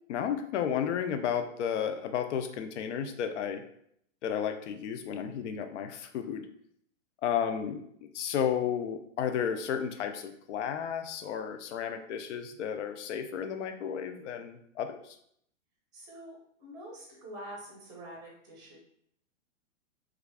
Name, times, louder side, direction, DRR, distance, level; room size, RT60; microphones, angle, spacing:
voice 1, 0.1-3.6 4.2-6.5 7.2-15.2, left 8 dB, 60° left, 7 dB, 0.5 m, -33 dB
voice 2, 15.9-18.8, right 1 dB, 10° right, -2 dB, 0.7 m, -46 dB
3.2 x 2.5 x 3.3 m, 0.70 s
hypercardioid pair, 155°, 40 cm